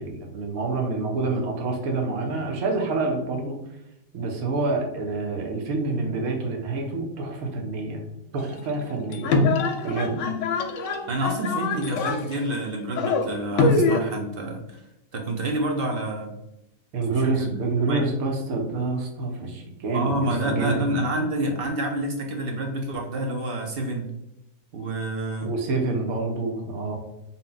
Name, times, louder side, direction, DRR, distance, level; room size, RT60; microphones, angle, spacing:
voice 1, 0.0-3.6 4.1-8.0 8.3-9.4 9.8-10.2 16.9-20.8 25.4-27.0, right 3 dB, 85° right, 1 dB, 1.2 m, -27 dB
sound 1, 8.4-14.0, left 3 dB, 70° left, 0.8 m, -24 dB
voice 2, 11.1-14.9 15.1-16.3 17.1-17.6 17.9-18.1 19.9-24.1 24.7-25.5, right 1 dB, 60° right, 2 dB, 0.6 m, -28 dB
3.8 x 2.1 x 3.8 m, 0.86 s
omnidirectional pair, 1.5 m